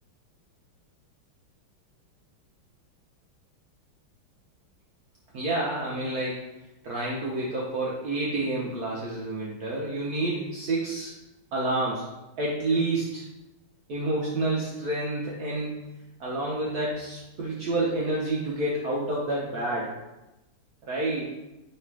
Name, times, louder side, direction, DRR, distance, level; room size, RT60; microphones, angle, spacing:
voice 1, 5.3-6.5 6.8-11.1 11.5-12.1 12.4-13.2 13.9-15.7 16.2-19.9 20.9-21.3, right 2 dB, 70° right, -5 dB, 0.9 m, -29 dB
3.3 x 3.1 x 4.4 m, 0.98 s
omnidirectional pair, 2.3 m